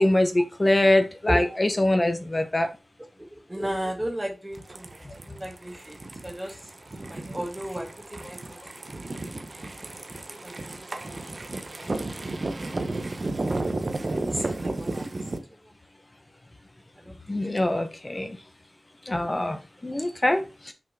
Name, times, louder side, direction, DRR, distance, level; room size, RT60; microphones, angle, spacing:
voice 1, 0.0-2.7 17.3-18.3 19.1-19.6 19.8-20.4, left 1 dB, 35° left, 7 dB, 1.0 m, -23 dB
voice 2, 3.3-6.6 7.0-8.6 9.2-9.7 10.1-11.2 11.7-12.2 14.3-15.3 15.6-15.7 17.0-17.4, equal, 20° right, 2 dB, 1.6 m, -35 dB
sound 1, 4.5-15.4, right 2 dB, 50° right, 1.0 m, -33 dB
6.2 x 3.7 x 4.7 m, 0.29 s
cardioid pair, 45°, 0 cm